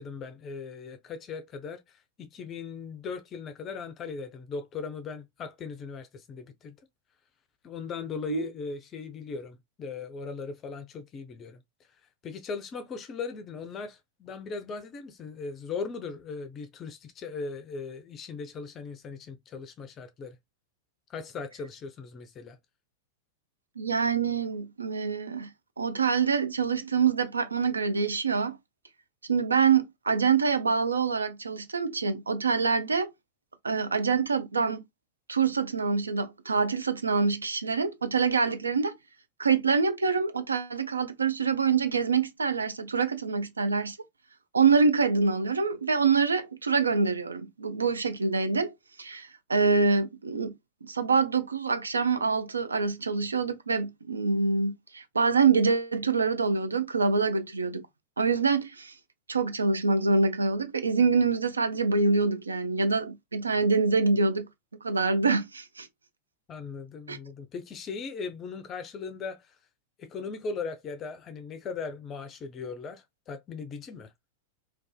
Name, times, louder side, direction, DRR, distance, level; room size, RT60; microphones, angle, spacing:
voice 1, 0.0-6.8 7.6-11.6 12.2-20.4 21.1-22.6 66.5-69.6 70.0-74.1, left 5 dB, 30° left, 0.4 m, -38 dB
voice 2, 23.8-25.5 25.8-28.6 29.3-33.1 33.6-34.8 35.3-39.0 39.4-44.0 44.5-48.7 49.0-50.5 50.8-57.8 58.2-58.9 59.3-64.5 64.8-65.9 67.1-67.2, right 4 dB, 75° right, 0.4 m, -25 dB
2.4 x 2.3 x 2.2 m
figure-of-eight pair, 90°, 0 cm